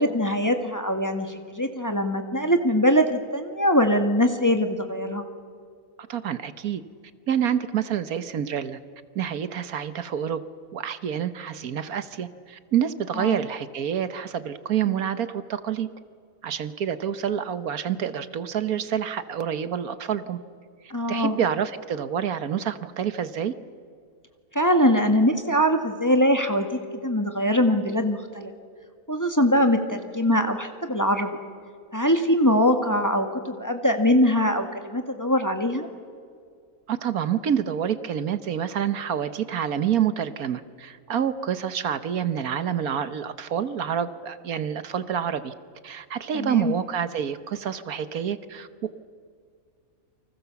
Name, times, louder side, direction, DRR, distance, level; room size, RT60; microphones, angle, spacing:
voice 1, 0.0-5.2 13.2-13.4 20.9-21.4 24.5-26.7 27.0-28.5 29.1-31.3 31.9-35.9 46.3-46.7, equal, 10° left, 5 dB, 1.6 m, -22 dB
voice 2, 6.1-6.8 7.3-8.8 9.1-10.4 10.7-15.9 16.4-20.4 21.1-23.5 36.9-45.5 45.8-48.7, right 9 dB, 75° right, 12 dB, 1.5 m, -27 dB
29.0 x 25.0 x 7.1 m, 2.1 s
omnidirectional pair, 1.6 m